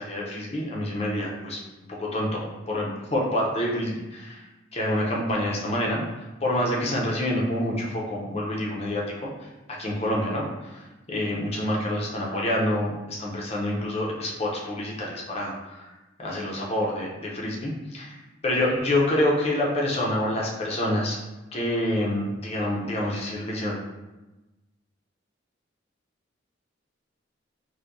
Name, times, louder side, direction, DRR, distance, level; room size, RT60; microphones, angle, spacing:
voice 1, 0.0-1.6 1.9-4.4 4.7-6.0 6.4-15.9 16.2-18.2 18.4-21.2 21.5-23.8, left 1 dB, 35° left, -3 dB, 0.6 m, -27 dB
4.4 x 2.2 x 2.6 m, 1.1 s
head